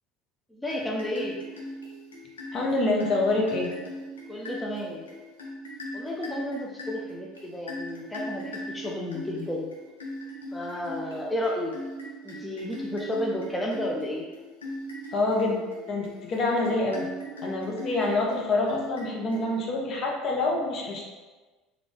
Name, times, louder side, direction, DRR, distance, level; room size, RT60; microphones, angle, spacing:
voice 1, 0.5-1.4 4.3-5.1 5.9-9.7 10.5-11.7 12.2-14.3, left 1 dB, 10° left, -2 dB, 0.5 m, -32 dB
sound 1, 0.7-19.9, equal, 85° left, 0.6 m, -40 dB
voice 2, 2.5-3.7 15.1-15.6 15.9-17.1 17.4-21.1, left 2 dB, 45° left, -1 dB, 0.8 m, -26 dB
3.7 x 2.4 x 3.4 m, 1.3 s
figure-of-eight pair, 65°, 0 cm